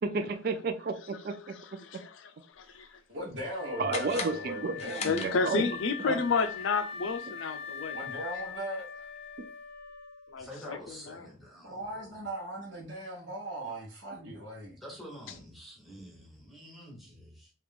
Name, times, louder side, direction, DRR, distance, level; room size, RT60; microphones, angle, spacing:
voice 1, 0.0-1.4 1.9-2.0 3.8-5.6 6.1-6.2, right 4 dB, 50° right, 0.4 m, -32 dB
voice 2, 1.5-2.3 2.6-2.9 5.0-8.0 10.3-10.8 11.1-11.3, left 4 dB, 80° left, 0.5 m, -31 dB
voice 3, 3.1-5.4 7.9-9.1 11.6-14.8, right 1 dB, 70° right, 1.0 m, -39 dB
Wind instrument woodwind instrument, 3.5-10.5, left 6 dB, 25° right, 1.2 m, -42 dB
sound 1, 3.9-5.8, left 5 dB, 35° left, 0.5 m, -40 dB
voice 4, 10.4-12.2 14.8-17.5, equal, ahead, 0.9 m, -48 dB
3.3 x 2.4 x 3.4 m
head